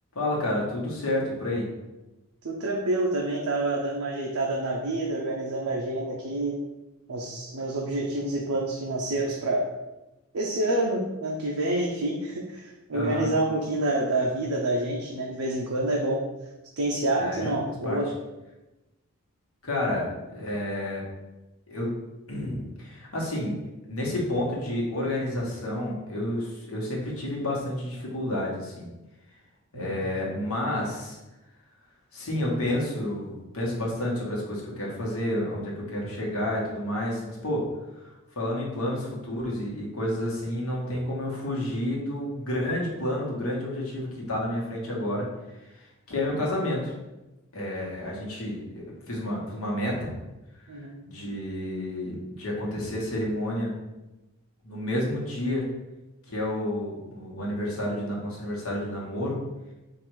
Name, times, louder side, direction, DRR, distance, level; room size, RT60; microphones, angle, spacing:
voice 1, 0.1-1.7 12.9-13.3 17.2-17.5 17.8-18.0 19.6-21.0 21.7-21.9 22.3-23.5 23.8-28.9 29.7-31.2 32.1-37.7 38.4-45.3 45.7-46.9 47.5-50.1 51.1-53.7 54.6-55.7 56.3-59.4, left 1 dB, 75° left, -3 dB, 1.2 m, -30 dB
voice 2, 2.4-6.6 7.1-9.7 10.3-16.2 16.8-18.1 29.7-30.0 50.7-51.0, right 2 dB, 85° right, -1 dB, 0.6 m, -28 dB
3.8 x 2.5 x 4.6 m, 1.0 s
head